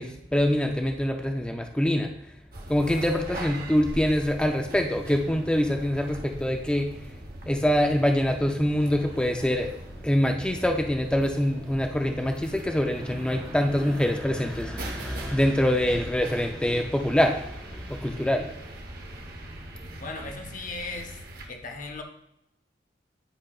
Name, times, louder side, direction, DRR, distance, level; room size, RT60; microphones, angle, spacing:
voice 1, 0.0-2.1 2.7-6.9 7.5-9.7 10.0-18.5, equal, 5° left, 3 dB, 0.3 m, -25 dB
sound 1, 2.5-21.5, right 1 dB, 55° right, 0.9 m, -41 dB
voice 2, 20.0-21.2 21.5-22.0, left 3 dB, 45° left, 4 dB, 0.8 m, -37 dB
10.0 x 4.7 x 2.3 m, 0.83 s
head